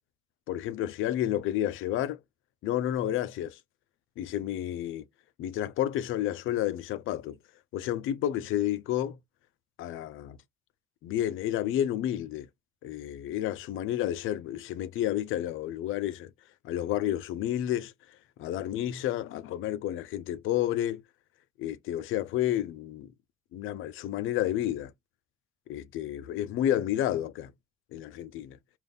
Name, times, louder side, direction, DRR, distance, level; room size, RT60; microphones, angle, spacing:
voice 1, 0.5-2.2 2.6-3.6 4.2-5.0 5.4-7.4 7.7-9.2 9.8-10.4 11.0-12.5 12.8-16.3 16.6-17.9 18.4-21.0 21.6-23.1 23.5-24.9 25.7-27.5 27.9-28.6, left 12 dB, 90° left, 0.5 m, -30 dB
3.5 x 2.5 x 3.9 m
cardioid pair, 90°, 20 cm